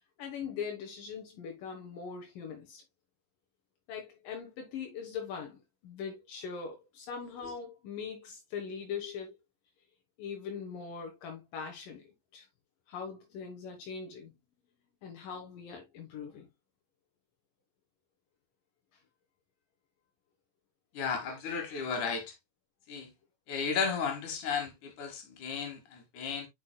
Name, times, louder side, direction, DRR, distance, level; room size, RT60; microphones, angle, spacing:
voice 1, 0.2-2.8 3.9-9.4 10.2-12.1 12.3-12.5 12.9-14.3 15.0-16.5, left 6 dB, 80° left, 2.9 m, -41 dB
voice 2, 20.9-22.2 22.9-23.1 23.5-26.5, left 6 dB, 65° left, 3.2 m, -34 dB
8.9 x 6.0 x 2.2 m
omnidirectional pair, 3.8 m